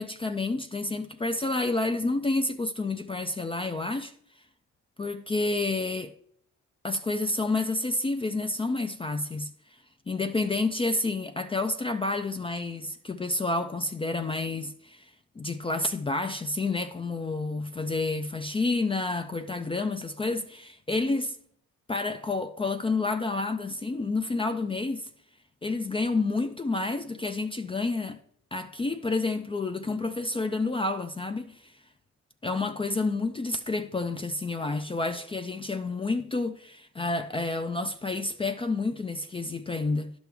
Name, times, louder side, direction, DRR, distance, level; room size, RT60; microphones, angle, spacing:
voice 1, 0.0-4.1 5.0-6.1 6.8-9.8 10.1-21.4 21.9-25.1 25.6-28.2 28.5-31.7 32.4-40.1, left 3 dB, 20° left, 0.4 m, -29 dB
10.5 x 6.1 x 3.4 m
cardioid pair, 90°, 30 cm